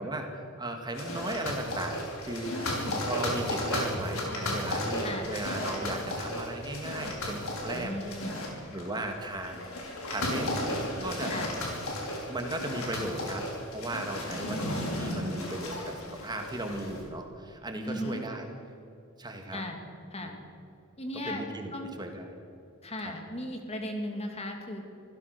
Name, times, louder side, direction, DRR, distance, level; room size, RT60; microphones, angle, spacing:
voice 1, 0.0-8.0 8.7-9.7 10.1-10.6 11.0-11.3 12.3-18.5 19.2-19.6 20.2-20.4 21.3-22.3 23.0-23.1, right 1 dB, 20° right, 3 dB, 2.0 m, -36 dB
sound 1, 0.9-17.0, left 1 dB, 90° left, 5.4 m, -34 dB
voice 2, 2.5-3.1 5.0-5.3 7.7-8.6 11.3-11.6 14.3-14.6 17.8-18.2 19.5-19.8 20.1-20.3 21.0-22.0 22.8-24.8, left 1 dB, 30° left, 3 dB, 2.7 m, -37 dB
25.5 x 16.0 x 6.7 m, 2.5 s
head